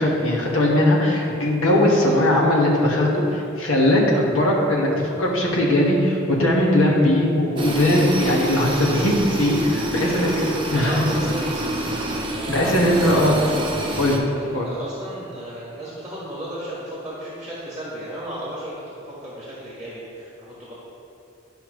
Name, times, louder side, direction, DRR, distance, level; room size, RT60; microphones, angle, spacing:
voice 1, 0.0-11.1 11.9-12.0 12.5-13.3 13.9-14.2 14.5-14.7, left 1 dB, 80° left, -3 dB, 1.5 m, -19 dB
sound 1, 7.6-14.2, right 1 dB, 25° right, 0.7 m, -27 dB
voice 2, 10.0-12.0 12.3-12.5 12.9-14.0 14.3-20.7, equal, 5° right, -8 dB, 1.6 m, -34 dB
11.0 x 5.6 x 3.2 m, 2.5 s
head